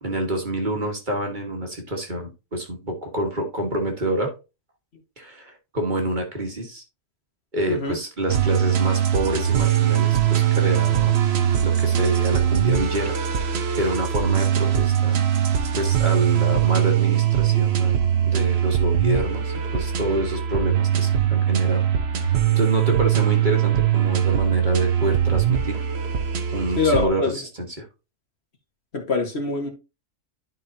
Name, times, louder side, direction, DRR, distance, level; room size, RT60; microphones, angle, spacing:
voice 1, 0.0-4.3 5.2-6.8 7.5-11.2 11.6-13.2 13.7-15.2 15.7-17.9 18.2-21.9 22.2-25.8 26.5-27.9, right 1 dB, 35° right, 1.8 m, -27 dB
voice 2, 7.7-8.0 26.8-27.4 28.9-29.7, left 4 dB, 55° left, 1.9 m, -24 dB
sound 1, 8.3-27.1, right 10 dB, 55° right, 1.2 m, -21 dB
11.0 x 5.6 x 2.8 m
omnidirectional pair, 1.3 m